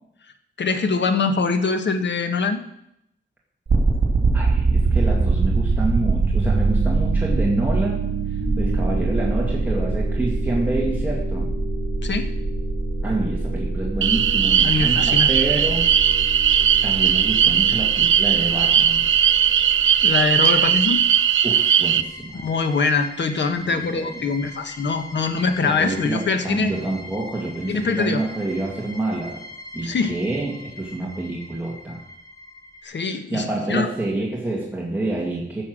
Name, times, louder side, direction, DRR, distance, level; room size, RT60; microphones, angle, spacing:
voice 1, 0.6-2.6 12.0-12.3 14.6-15.3 20.0-21.0 22.4-26.7 27.7-28.2 29.8-30.1 32.8-33.9, left 4 dB, 65° left, 8 dB, 1.3 m, -23 dB
sound 1, 3.7-20.6, right 3 dB, 55° right, 2.9 m, -23 dB
voice 2, 4.3-8.1 8.5-11.5 13.0-15.9 16.8-19.0 21.4-22.4 23.6-24.3 25.6-29.4 29.7-32.0 33.3-35.6, right 2 dB, 10° right, -4 dB, 2.2 m, -27 dB
sound 2, 14.0-22.0, right 9 dB, 85° right, 0.5 m, -18 dB
sound 3, 14.5-32.8, left 1 dB, 15° left, 2.1 m, -41 dB
15.5 x 7.2 x 6.3 m, 0.78 s
wide cardioid pair, 125°, 20 cm